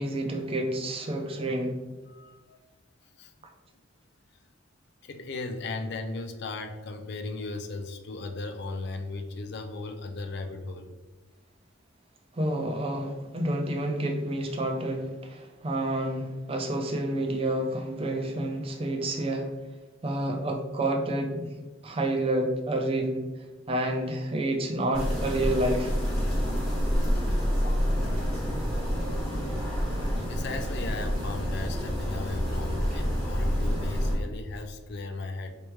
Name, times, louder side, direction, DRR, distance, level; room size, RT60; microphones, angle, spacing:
voice 1, 0.0-1.8 12.3-19.5 20.0-21.5 21.8-23.2 23.7-25.9, right 1 dB, 30° right, 3 dB, 0.4 m, -29 dB
voice 2, 2.1-2.6 3.2-3.3 5.0-11.0 30.3-35.5, left 3 dB, 55° left, 7 dB, 0.4 m, -36 dB
sound 1, 24.9-34.1, equal, 5° left, 1.5 m, -28 dB
3.4 x 3.0 x 3.0 m, 1.2 s
head